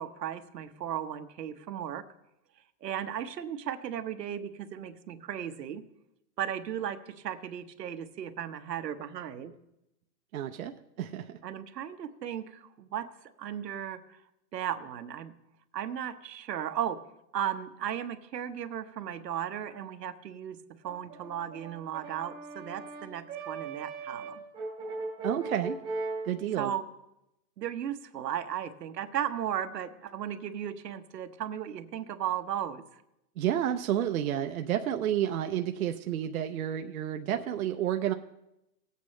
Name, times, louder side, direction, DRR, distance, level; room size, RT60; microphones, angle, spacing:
voice 1, 0.0-2.0 2.8-5.8 6.4-9.5 11.4-13.1 13.4-14.2 14.5-15.3 15.7-17.0 17.3-20.6 20.8-24.4 26.6-26.8 27.6-33.0, right 10 dB, 85° right, 8 dB, 1.1 m, -36 dB
voice 2, 10.3-11.4 25.2-25.8 26.2-26.7 33.4-38.1, right 11 dB, 60° right, 6 dB, 0.6 m, -30 dB
Brass instrument, 20.8-26.3, right 3 dB, 10° right, 1.1 m, -38 dB
18.5 x 8.3 x 3.2 m, 0.86 s
hypercardioid pair, 175°, 48 cm